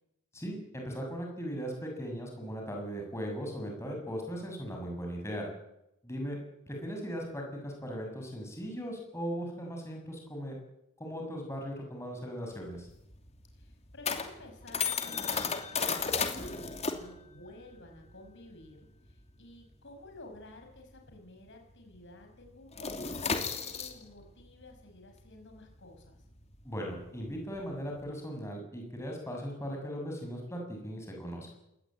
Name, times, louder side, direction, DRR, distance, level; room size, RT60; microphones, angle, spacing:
voice 1, 0.3-5.5 6.0-6.4 6.7-10.6 11.0-12.9 26.6-31.5, equal, 10° left, 1 dB, 6.8 m, -38 dB
sound 1, 12.5-21.5 21.7-22.0 22.3-28.0, left 5 dB, 30° left, 2.8 m, -35 dB
voice 2, 13.5-26.3, left 2 dB, 55° left, 4 dB, 5.8 m, -52 dB
23.5 x 19.5 x 8.9 m, 0.86 s
head